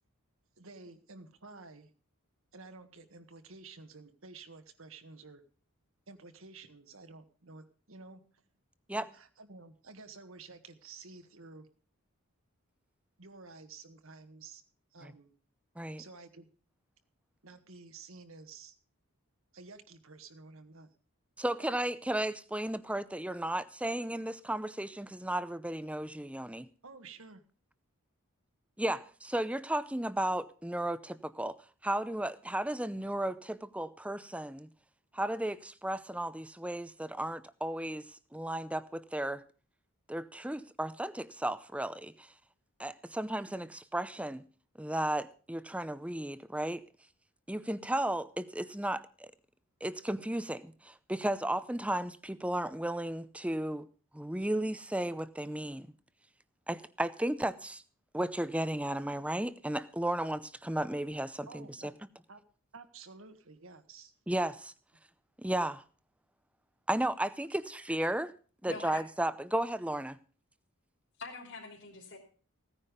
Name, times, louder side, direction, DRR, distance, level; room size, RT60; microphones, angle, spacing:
voice 1, 0.6-1.9 2.5-5.4 6.1-8.2 8.9-11.7 13.2-14.6 14.9-15.3 16.0-16.5 17.4-18.7 19.5-20.9 26.8-27.4 61.5-61.9 62.3-62.4 62.7-64.1, right 3 dB, 65° right, 1.6 m, -51 dB
voice 2, 21.4-26.7 28.8-31.5 31.8-34.7 35.1-39.4 40.1-42.3 42.8-44.4 44.8-46.8 47.5-49.3 49.8-53.9 54.1-55.9 56.7-57.8 58.1-61.9 64.3-64.7 65.4-65.8 66.9-68.3 68.6-70.2, right 1 dB, 5° right, 0.6 m, -34 dB
voice 3, 68.7-69.0 71.2-72.2, left 3 dB, 55° left, 3.2 m, -44 dB
16.0 x 9.9 x 5.2 m
head